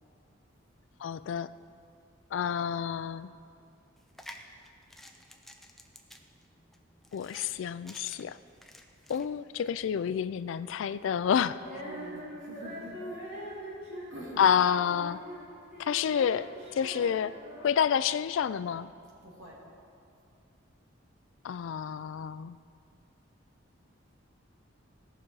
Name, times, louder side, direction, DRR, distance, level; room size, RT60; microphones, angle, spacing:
voice 1, 1.0-1.5 2.3-3.3 7.1-8.4 9.1-11.6 14.4-15.2 15.8-18.9 21.4-22.6, left 8 dB, 75° left, 15 dB, 0.3 m, -29 dB
sound 1, 4.0-9.2, left 1 dB, ahead, 0.5 m, -51 dB
Female singing, 11.6-18.0, equal, 50° right, 3.0 m, -43 dB
voice 2, 11.6-13.0 14.1-14.4 19.2-19.6, right 1 dB, 80° right, -5 dB, 2.9 m, -45 dB
17.0 x 6.1 x 4.7 m, 2.4 s
head